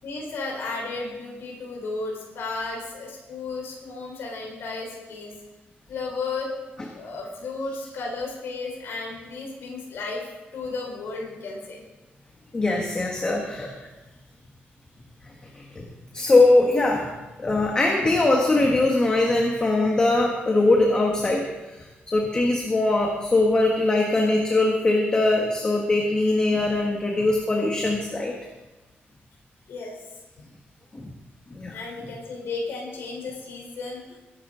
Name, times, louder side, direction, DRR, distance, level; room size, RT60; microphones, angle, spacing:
voice 1, 0.0-5.3 5.9-6.5 6.9-10.2 10.5-11.8 15.5-15.8 29.7-30.0 31.7-34.2, left 3 dB, 75° left, -1 dB, 4.1 m, -34 dB
voice 2, 12.5-13.7 15.5-15.9 16.1-17.1 17.4-28.3 30.9-31.1 31.5-31.8, left 2 dB, 20° left, 0 dB, 1.5 m, -21 dB
22.5 x 11.0 x 3.8 m, 1.1 s
wide cardioid pair, 180°, 4 cm